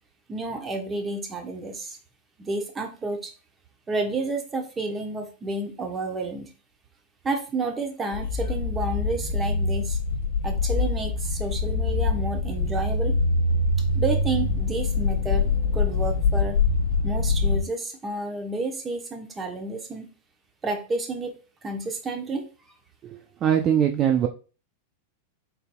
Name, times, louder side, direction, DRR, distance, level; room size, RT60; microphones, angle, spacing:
voice 1, 0.3-2.0 2.4-3.3 3.9-6.5 7.2-10.0 10.4-13.2 13.9-15.5 15.7-16.6 17.0-20.1 20.6-21.3 21.6-22.4, right 2 dB, 20° right, 4 dB, 1.0 m, -30 dB
sound 1, 8.1-17.6, left 3 dB, 70° left, 1.1 m, -24 dB
voice 2, 23.0-24.3, right 9 dB, 35° right, 5 dB, 0.5 m, -22 dB
4.0 x 4.0 x 2.3 m, 0.34 s
hypercardioid pair, 105°, 0 cm